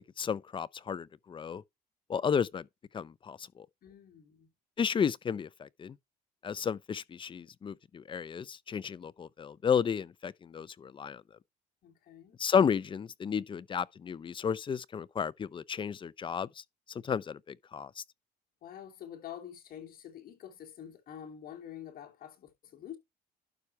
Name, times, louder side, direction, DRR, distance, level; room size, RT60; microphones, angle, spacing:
voice 1, 0.2-1.6 2.1-2.7 2.9-3.7 4.8-6.0 6.4-11.2 12.4-18.0, left 7 dB, 30° left, 0.5 m, -33 dB
voice 2, 3.8-4.5 11.8-12.4 18.6-23.0, left 10 dB, 60° left, 3.1 m, -47 dB
11.5 x 4.8 x 4.4 m
cardioid pair, 110°, 17 cm